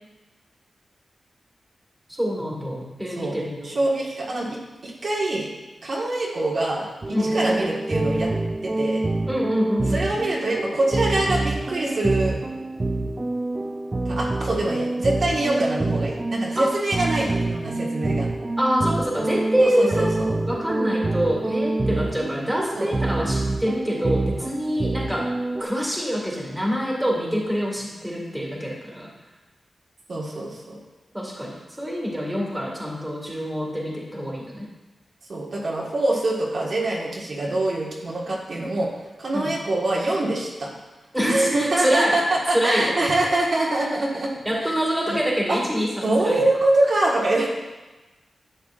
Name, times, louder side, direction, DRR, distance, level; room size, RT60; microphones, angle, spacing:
voice 1, 2.2-3.8 7.1-7.3 9.3-10.1 16.6-16.7 18.6-25.3 25.6-29.1 31.1-34.7 39.3-39.5 41.1-42.2 42.5-42.9 44.4-46.4, equal, 10° right, -3 dB, 2.0 m, -25 dB
voice 2, 3.6-5.5 5.8-8.3 8.6-9.1 9.9-12.4 14.1-18.3 19.8-20.4 22.7-22.9 30.1-30.8 35.3-38.9 39.2-40.8 41.2-44.3 44.6-44.7 45.1-45.2 45.5-45.6 46.0-47.5, right 2 dB, 60° right, -5 dB, 1.7 m, -24 dB
sound 1, 7.0-25.6, right 2 dB, 25° right, 0.4 m, -26 dB
11.0 x 7.3 x 2.5 m, 1.2 s
wide cardioid pair, 95°, 0 cm